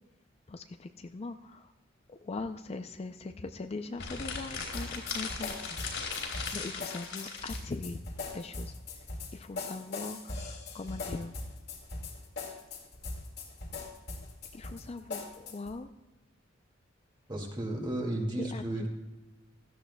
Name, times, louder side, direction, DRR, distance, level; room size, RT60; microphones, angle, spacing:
voice 1, 0.5-1.7 2.2-5.8 6.5-8.0 8.3-8.7 9.3-11.3 14.5-15.9 18.5-18.9, left 3 dB, 30° left, 8 dB, 0.4 m, -40 dB
sound 1, 3.9-7.6, left 5 dB, 80° left, 3.4 m, -38 dB
sound 2, 4.7-15.8, left 3 dB, 55° left, 2.1 m, -40 dB
voice 2, 17.3-18.9, right 1 dB, 25° right, 1 dB, 2.1 m, -33 dB
16.5 x 13.0 x 2.2 m, 1.1 s
head